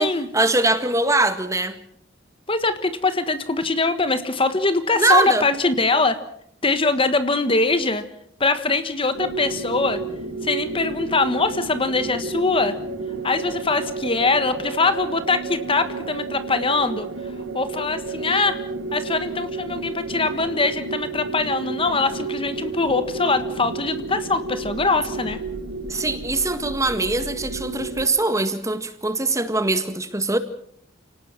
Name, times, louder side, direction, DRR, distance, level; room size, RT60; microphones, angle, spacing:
voice 1, 0.0-1.8 5.0-5.4 25.9-30.4, right 2 dB, 15° right, 10 dB, 1.8 m, -22 dB
voice 2, 2.5-6.2 6.6-8.0 8.4-10.0 10.4-12.8 13.2-17.1 17.5-18.6 18.9-25.4, left 3 dB, 25° left, 10 dB, 1.4 m, -22 dB
sound 1, 9.1-28.1, right 3 dB, 85° right, 1.6 m, -32 dB
30.0 x 18.5 x 6.1 m, 0.65 s
head